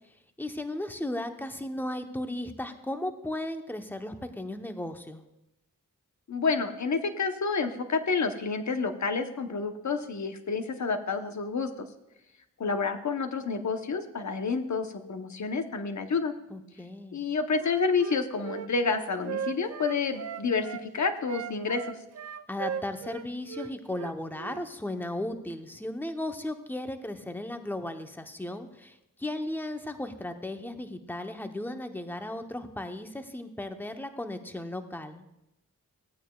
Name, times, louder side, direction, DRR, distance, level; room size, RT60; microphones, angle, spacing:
voice 1, 0.4-5.2 16.5-17.2 22.5-35.2, left 1 dB, 5° left, 6 dB, 0.9 m, -36 dB
voice 2, 6.3-11.7 12.6-16.3 17.1-21.9, left 4 dB, 60° left, 7 dB, 1.0 m, -29 dB
Wind instrument woodwind instrument, 17.6-20.8 21.2-24.6, right 8 dB, 55° right, 0.5 m, -38 dB
15.5 x 8.9 x 2.4 m, 0.91 s
cardioid pair, 55°, 32 cm